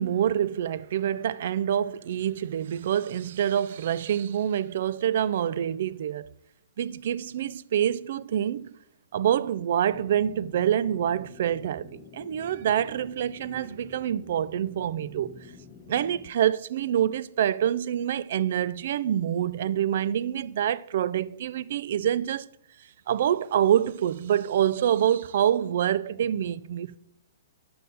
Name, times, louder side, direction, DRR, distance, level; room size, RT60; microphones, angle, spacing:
voice 1, 0.0-6.3 6.8-8.8 9.1-15.3 15.9-22.5 23.1-27.0, right 10 dB, 55° right, 0.3 m, -26 dB
sound 1, 9.9-16.3, left 5 dB, 20° left, 0.9 m, -49 dB
6.3 x 5.5 x 5.5 m
hypercardioid pair, 160°, 0 cm